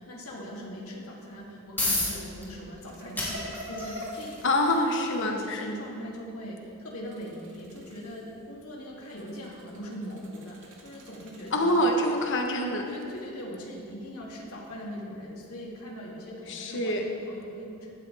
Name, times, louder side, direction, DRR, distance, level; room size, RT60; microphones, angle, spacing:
voice 1, 0.0-4.4 4.7-11.7 12.9-17.9, equal, 80° left, -4 dB, 3.0 m, -40 dB
sound 1, 1.4-16.2, left 2 dB, 10° left, 3.2 m, -39 dB
sound 2, 2.9-5.6 6.9-8.4 9.0-13.2, equal, 60° right, 2.2 m, -45 dB
voice 2, 4.4-5.6 11.5-12.9 16.5-17.0, left 1 dB, 60° left, 2 dB, 1.2 m, -25 dB
16.5 x 12.5 x 3.5 m, 2.7 s
head